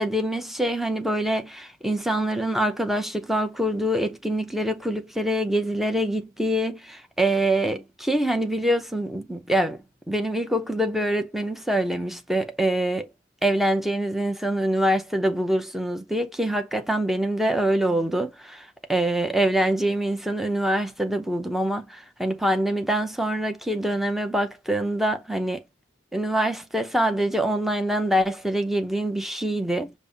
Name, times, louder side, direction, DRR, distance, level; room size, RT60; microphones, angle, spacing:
voice 1, 0.0-13.1 13.4-25.6 26.1-29.9, right 1 dB, ahead, 0.6 m, -25 dB
5.3 x 2.1 x 3.8 m
head